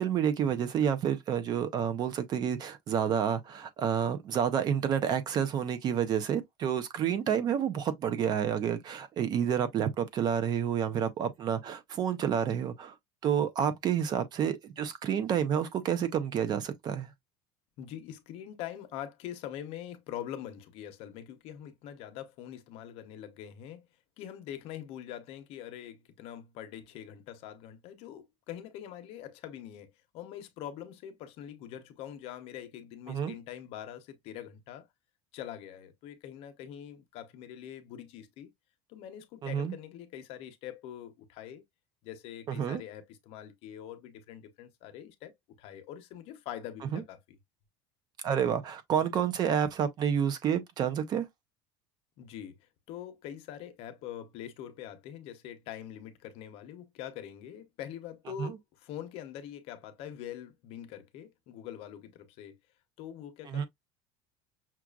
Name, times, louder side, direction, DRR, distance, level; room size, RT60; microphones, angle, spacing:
voice 1, 0.0-12.9 13.2-17.1 33.1-33.3 39.4-39.7 42.5-42.8 46.9-47.0 48.2-51.3 58.4-58.6 63.5-63.7, right 8 dB, 35° right, 0.6 m, -29 dB
voice 2, 17.8-23.8 24.2-34.9 35.3-38.5 38.9-41.6 42.0-45.3 45.6-47.4 52.2-52.6 52.9-62.6 63.0-63.7, left 10 dB, 55° left, 0.8 m, -44 dB
5.9 x 2.4 x 2.3 m
cardioid pair, 155°, 12 cm